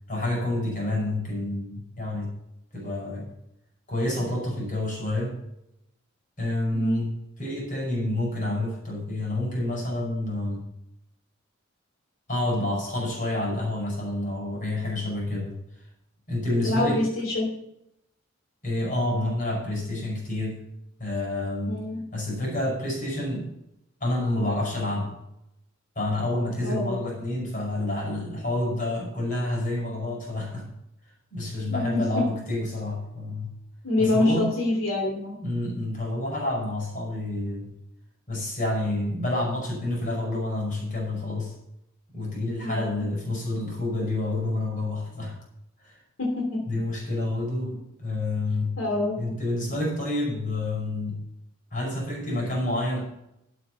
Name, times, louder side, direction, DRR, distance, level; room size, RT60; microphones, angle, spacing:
voice 1, 0.1-2.4 2.7-3.3 3.9-5.4 6.4-10.6 12.3-15.6 16.3-17.0 18.6-20.6 21.0-21.8 22.1-23.5 24.0-25.1 26.0-30.7 31.3-33.5 34.0-34.5 35.4-37.7 38.3-41.5 42.1-45.4 45.8-46.0 46.7-48.8 49.2-51.2 51.7-53.0, left 1 dB, 40° left, -1 dB, 5.7 m, -28 dB
voice 2, 16.6-17.5 21.6-22.0 26.6-27.0 31.7-32.2 33.8-35.3 42.6-43.0 46.2-46.3 48.8-49.3, left 2 dB, 85° left, 0 dB, 3.1 m, -26 dB
12.0 x 8.4 x 5.7 m, 0.81 s
head